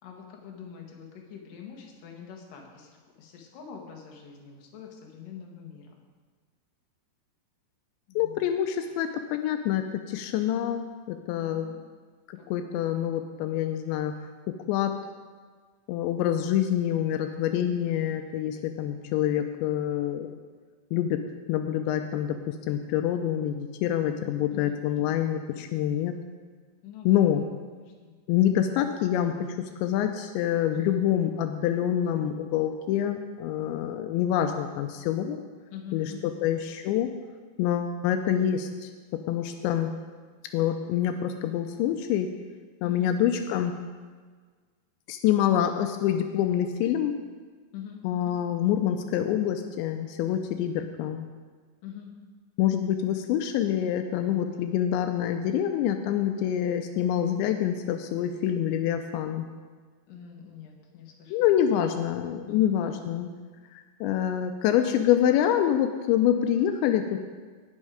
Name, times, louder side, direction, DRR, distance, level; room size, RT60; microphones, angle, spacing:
voice 1, 0.0-2.9 3.2-5.9 8.1-8.6 11.3-11.9 12.4-12.9 17.5-17.8 24.5-25.2 26.8-27.5 27.7-28.2 30.7-31.0 35.7-36.3 42.8-43.1 47.7-48.4 51.8-52.1 54.2-54.6 60.1-62.0 62.5-63.0, left 8 dB, 60° left, 0 dB, 2.7 m, -45 dB
voice 2, 8.2-11.8 12.3-14.1 14.5-15.0 15.9-20.4 20.9-21.2 21.5-26.2 27.1-27.4 28.3-35.4 35.9-36.1 36.4-37.1 37.6-38.9 39.3-39.9 40.5-42.3 42.8-43.8 45.1-47.2 48.0-51.3 52.6-59.4 61.3-63.3 63.7-67.2, left 10 dB, 85° left, 6 dB, 2.9 m, -26 dB
18.5 x 6.4 x 5.0 m, 1.5 s
omnidirectional pair, 5.2 m